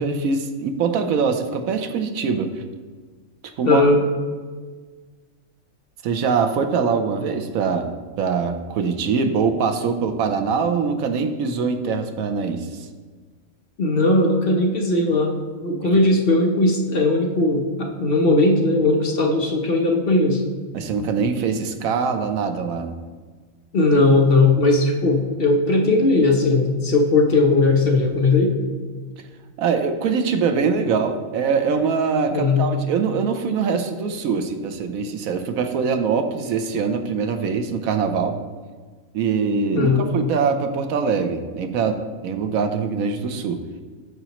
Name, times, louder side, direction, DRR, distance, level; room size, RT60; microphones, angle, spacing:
voice 1, 0.0-2.6 3.6-3.8 6.0-7.9 8.2-12.7 20.7-23.0 29.6-38.4 39.1-42.0 42.2-43.6, right 5 dB, 80° right, 7 dB, 1.1 m, -23 dB
voice 2, 3.6-4.0 13.8-15.3 15.6-20.4 23.7-28.5 32.3-32.6 39.7-40.1, left 2 dB, 50° left, 1 dB, 0.9 m, -18 dB
9.0 x 6.6 x 3.0 m, 1.5 s
omnidirectional pair, 1.4 m